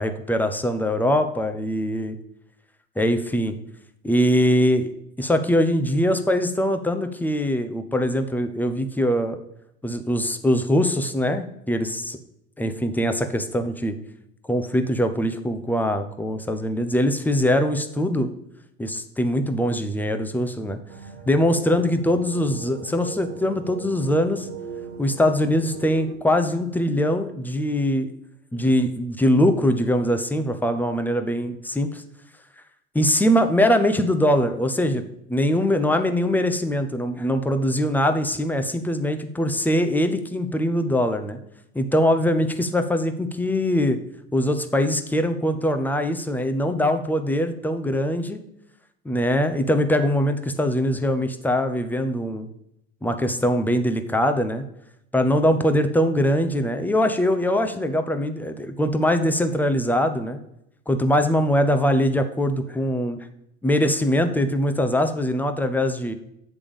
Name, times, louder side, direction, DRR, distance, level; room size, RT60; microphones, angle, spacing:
voice 1, 0.0-2.2 3.0-3.5 4.0-4.9 5.2-9.4 9.8-12.2 12.6-14.0 14.5-18.3 18.8-20.8 21.3-24.5 25.0-28.1 28.5-32.0 32.9-41.4 41.7-44.0 44.3-48.4 49.0-52.5 53.0-54.6 55.1-60.4 60.9-63.2 63.6-66.1, equal, 5° left, 7 dB, 0.7 m, -22 dB
sound 1, 20.9-26.2, right 6 dB, 70° right, 0.9 m, -39 dB
8.4 x 3.5 x 5.1 m, 0.80 s
hypercardioid pair, 80°, 35 cm